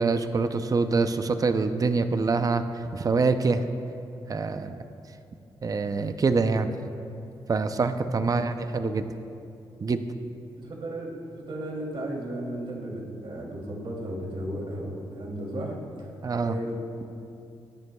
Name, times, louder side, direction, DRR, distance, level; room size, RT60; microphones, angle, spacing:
voice 1, 0.0-3.6 4.3-4.8 5.6-6.7 7.5-9.1 9.8-10.0 16.2-16.6, right 4 dB, 35° right, 9 dB, 0.5 m, -25 dB
voice 2, 10.6-11.2 11.5-16.1 16.4-16.7, right 1 dB, 55° right, -3 dB, 2.7 m, -34 dB
20.0 x 9.4 x 2.3 m, 2.6 s
cardioid pair, 75°, 10 cm